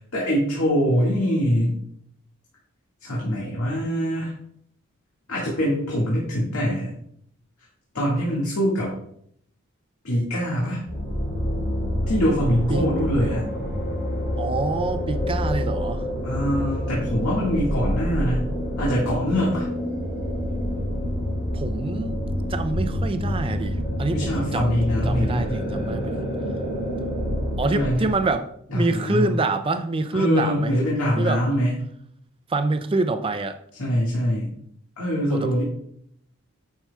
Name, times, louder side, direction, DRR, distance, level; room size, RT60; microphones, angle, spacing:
voice 1, 0.1-1.8 3.0-4.3 5.3-6.9 7.9-8.9 10.0-10.8 12.1-13.4 16.2-18.4 18.8-19.7 24.1-25.5 27.6-28.1 28.7-29.3 30.1-31.7 33.8-34.5 35.0-35.6, equal, 80° left, -6 dB, 1.8 m, -23 dB
sound 1, 10.9-28.3, equal, 45° left, 2.4 m, -27 dB
voice 2, 14.4-16.0 21.5-22.2 22.5-26.2 27.6-30.7 31.2-31.4 32.5-33.6 35.3-35.5, right 3 dB, 25° right, 9 dB, 0.4 m, -26 dB
8.9 x 5.7 x 2.3 m, 0.68 s
head